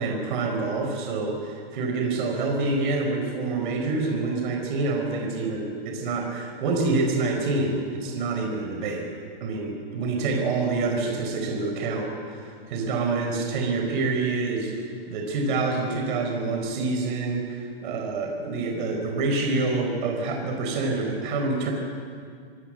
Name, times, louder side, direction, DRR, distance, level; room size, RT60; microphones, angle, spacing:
voice 1, 0.0-9.0 9.4-21.7, right 3 dB, 50° right, 2 dB, 4.4 m, -27 dB
25.5 x 17.5 x 7.6 m, 2.1 s
hypercardioid pair, 155°, 31 cm